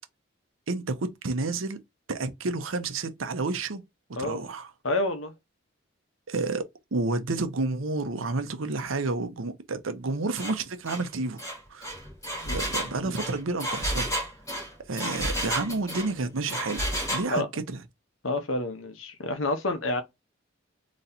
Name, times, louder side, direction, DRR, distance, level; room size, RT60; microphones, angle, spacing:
voice 1, 0.7-1.8 2.1-3.8 4.2-4.7 6.3-6.6 6.9-11.4 11.7-11.9 12.5-14.2 14.9-16.8 17.1-17.8, right 3 dB, 85° right, 0.8 m, -30 dB
voice 2, 4.8-5.3 12.3-12.6 13.0-13.1 17.3-17.5 18.2-20.0, left 2 dB, 85° left, 1.0 m, -29 dB
Engine, 10.4-10.6 10.9-11.0 11.4-16.1 16.5-17.3, equal, 15° left, 2.3 m, -31 dB
4.1 x 3.1 x 2.7 m
head